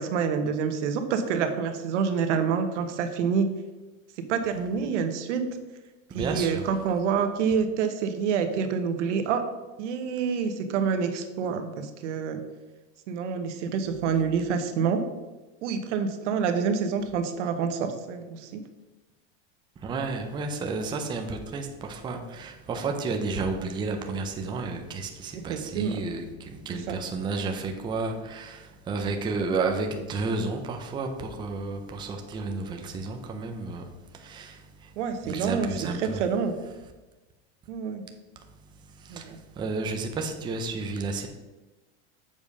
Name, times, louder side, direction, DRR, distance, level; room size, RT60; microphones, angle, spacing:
voice 1, 0.0-3.5 4.2-5.5 6.1-9.5 9.8-12.4 13.1-15.1 15.6-18.6 25.3-26.0 26.7-26.9 35.0-35.7 36.2-36.5 37.7-38.0 39.1-39.4, right 6 dB, 85° right, 7 dB, 1.2 m, -27 dB
voice 2, 6.1-6.7 19.8-34.9 35.2-36.2 39.0-41.3, right 3 dB, 15° right, 3 dB, 0.6 m, -32 dB
7.1 x 5.0 x 5.5 m, 1.2 s
supercardioid pair, 165°, 35 cm